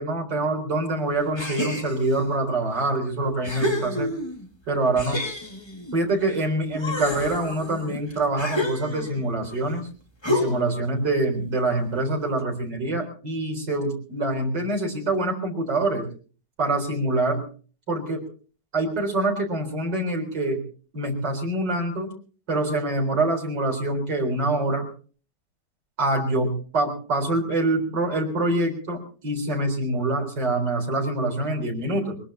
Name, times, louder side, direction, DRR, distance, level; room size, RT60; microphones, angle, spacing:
voice 1, 0.0-4.1 4.7-5.2 5.9-9.9 10.3-16.0 16.6-17.4 17.9-18.2 18.7-20.6 20.9-22.1 22.5-24.8 26.0-32.1, right 2 dB, 65° right, 1 dB, 4.7 m, -25 dB
sound 1, 1.4-2.2 2.9-3.0 3.4-4.5 5.0-6.4 6.7-9.3 10.2-10.8, left 2 dB, 15° left, 2.2 m, -29 dB
22.5 x 21.0 x 2.9 m, 0.39 s
omnidirectional pair, 2.0 m